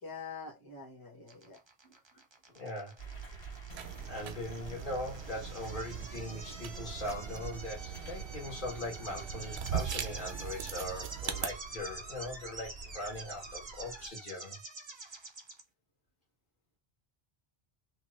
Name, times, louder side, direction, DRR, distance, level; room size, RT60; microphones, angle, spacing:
voice 1, 0.0-2.0, left 5 dB, 20° left, 0.9 m, -46 dB
sound 1, 1.3-15.6, right 3 dB, 35° right, 0.6 m, -48 dB
voice 2, 2.5-3.0 4.1-14.6, left 1 dB, 55° left, 1.4 m, -40 dB
sound 2, 3.0-14.1, right 4 dB, 75° left, 1.6 m, -48 dB
sound 3, 3.7-11.5, right 9 dB, 90° right, 0.8 m, -41 dB
2.9 x 2.3 x 3.0 m
omnidirectional pair, 1.1 m